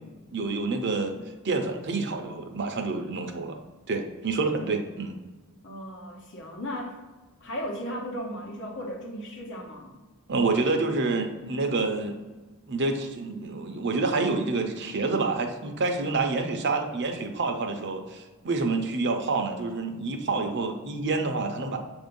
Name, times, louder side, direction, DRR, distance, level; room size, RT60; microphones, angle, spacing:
voice 1, 0.3-1.1 1.4-3.6 3.9-5.2 10.3-12.2 12.7-21.8, right 3 dB, 50° right, 5 dB, 0.6 m, -28 dB
voice 2, 5.6-6.9 7.4-10.0, equal, 55° left, 1 dB, 1.0 m, -36 dB
6.8 x 2.6 x 5.2 m, 1.2 s
head